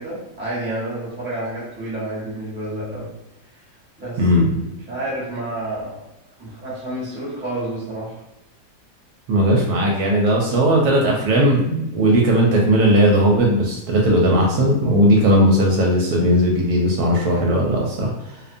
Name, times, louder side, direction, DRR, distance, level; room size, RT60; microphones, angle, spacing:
voice 1, 0.0-3.1 3.5-3.6 4.0-4.2 4.9-5.9 6.4-8.2, right 1 dB, 10° right, -8 dB, 0.7 m, -29 dB
voice 2, 4.2-4.6 9.3-18.4, equal, 75° right, -2 dB, 1.0 m, -17 dB
2.6 x 2.1 x 2.5 m, 0.88 s
omnidirectional pair, 1.7 m